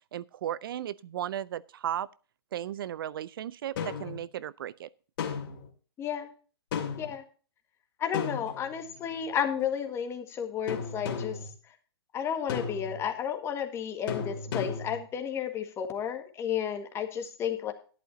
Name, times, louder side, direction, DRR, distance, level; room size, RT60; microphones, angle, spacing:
voice 1, 0.1-2.1 2.5-4.9, right 11 dB, 55° right, 0.4 m, -35 dB
sound 1, 3.8-4.2 5.2-5.7 6.7-7.1 8.1-9.0 10.7-11.5 12.5-13.1 14.1-15.0, left 6 dB, 55° left, 2.5 m, -34 dB
voice 2, 6.0-6.3 7.0-7.2 8.0-11.4 12.1-17.7, left 8 dB, 20° left, 1.7 m, -32 dB
13.0 x 11.0 x 2.7 m
hypercardioid pair, 130°, 14 cm